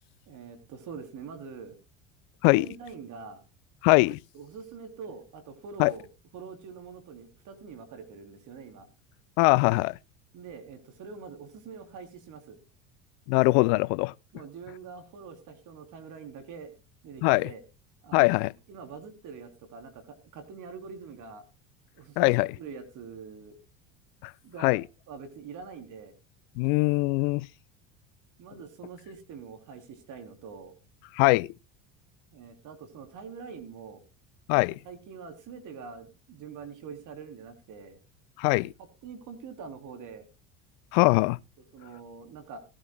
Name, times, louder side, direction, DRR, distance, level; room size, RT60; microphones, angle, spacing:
voice 1, 0.3-1.8 2.5-3.4 4.3-6.1 6.3-8.9 10.3-12.6 14.3-16.7 17.0-17.6 18.0-21.4 21.9-23.6 24.4-24.8 25.1-26.1 28.4-30.8 32.3-34.0 34.5-38.0 38.6-40.3 41.7-42.6, right 5 dB, 55° right, 3.4 m, -44 dB
voice 2, 3.8-4.2 5.8-5.9 9.4-10.0 13.3-14.1 17.2-17.5 18.1-18.5 22.2-22.6 24.2-24.3 24.6-24.8 26.6-27.5 31.2-31.5 34.5-34.7 38.4-38.7 40.9-41.4, left 26 dB, 65° left, 0.5 m, -22 dB
18.5 x 12.5 x 2.2 m
hypercardioid pair, 85°, 37 cm